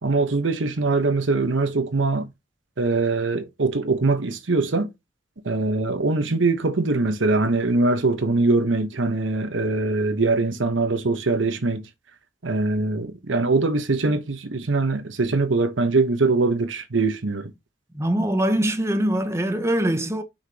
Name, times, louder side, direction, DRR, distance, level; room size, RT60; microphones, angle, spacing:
voice 1, 0.0-2.3 2.8-4.9 5.4-11.8 12.4-17.5, right 3 dB, 80° right, 1.0 m, -22 dB
voice 2, 17.9-20.2, right 1 dB, 15° right, 0.8 m, -23 dB
6.3 x 5.8 x 2.8 m
head